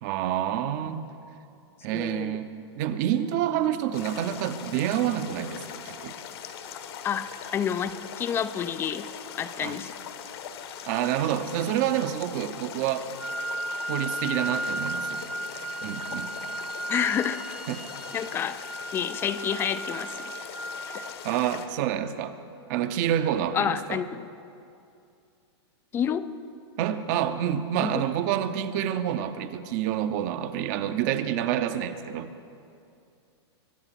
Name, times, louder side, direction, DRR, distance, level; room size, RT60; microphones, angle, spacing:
voice 1, 0.0-1.0 1.8-6.1 9.6-9.8 10.8-13.1 13.9-15.2 15.8-16.3 17.7-17.9 21.2-22.3 22.7-24.0 26.8-32.3, right 10 dB, 40° right, 11 dB, 0.8 m, -28 dB
voice 2, 1.9-2.4 7.0-9.1 9.4-9.9 16.9-17.4 18.1-18.6 18.9-20.3 20.9-21.0 23.5-24.3 25.9-26.3 27.8-28.0, left 8 dB, 15° left, 14 dB, 0.4 m, -29 dB
sound 1, 3.9-21.7, left 8 dB, 60° left, 1.3 m, -41 dB
Wind instrument woodwind instrument, 13.2-21.1, right 1 dB, 5° right, 0.9 m, -35 dB
22.5 x 8.9 x 6.0 m, 2.5 s
hypercardioid pair, 150°, 15 cm